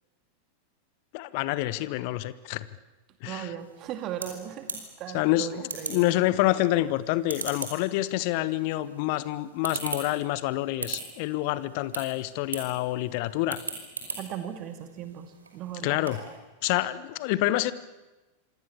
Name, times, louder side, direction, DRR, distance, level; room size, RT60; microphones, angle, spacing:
voice 1, 1.1-2.7 3.2-3.5 5.1-13.6 15.8-16.2 16.6-17.7, left 16 dB, 45° left, 16 dB, 1.2 m, -27 dB
voice 2, 3.2-6.1 14.1-16.1, right 10 dB, 35° right, 8 dB, 2.3 m, -38 dB
sound 1, 3.6-16.4, right 4 dB, 75° right, 5.4 m, -41 dB
26.5 x 26.0 x 7.2 m, 1.1 s
figure-of-eight pair, 90°, 0 cm